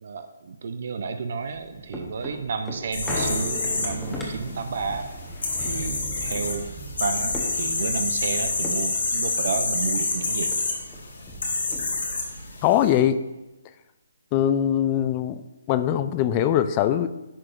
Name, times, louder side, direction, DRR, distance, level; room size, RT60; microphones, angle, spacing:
voice 1, 0.0-5.1 5.6-6.7 7.0-10.5, right 5 dB, 55° right, 8 dB, 0.5 m, -31 dB
sound 1, 1.4-10.1 10.5-10.6 10.9-12.2 12.7-12.8, equal, 5° left, 1.0 m, -37 dB
sound 2, 2.9-12.9, left 3 dB, 75° left, 1.6 m, -28 dB
voice 2, 12.6-13.2 14.3-15.4 15.7-17.1, left 10 dB, 20° left, 12 dB, 0.3 m, -21 dB
10.5 x 4.7 x 2.5 m, 1.0 s
hypercardioid pair, 165°, 0 cm